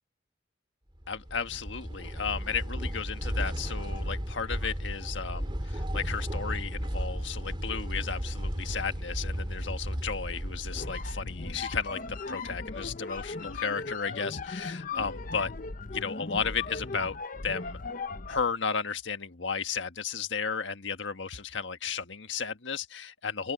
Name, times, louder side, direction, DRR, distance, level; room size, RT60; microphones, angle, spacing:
sound 1, 1.0-12.0, equal, 25° right, 3.1 m, -34 dB
voice 1, 1.1-15.5 15.9-17.2 17.4-17.8 18.3-23.5, left 6 dB, 75° left, 1.5 m, -34 dB
sound 2, 10.7-18.5, left 3 dB, 45° left, 0.8 m, -38 dB
head